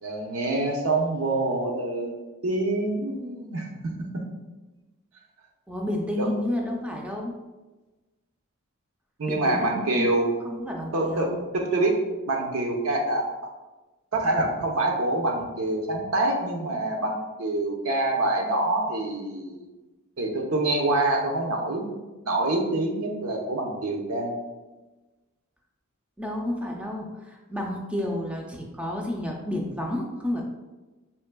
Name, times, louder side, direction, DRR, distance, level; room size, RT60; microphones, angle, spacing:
voice 1, 0.0-4.2 6.2-6.3 9.2-10.3 10.9-12.0 12.3-13.2 14.1-19.7 20.2-21.9 22.2-24.3, right 2 dB, 80° right, 1 dB, 0.7 m, -26 dB
voice 2, 5.7-7.3 9.3-11.4 26.2-30.4, left 1 dB, 5° right, 0 dB, 0.4 m, -31 dB
4.4 x 3.2 x 2.2 m, 1.2 s
head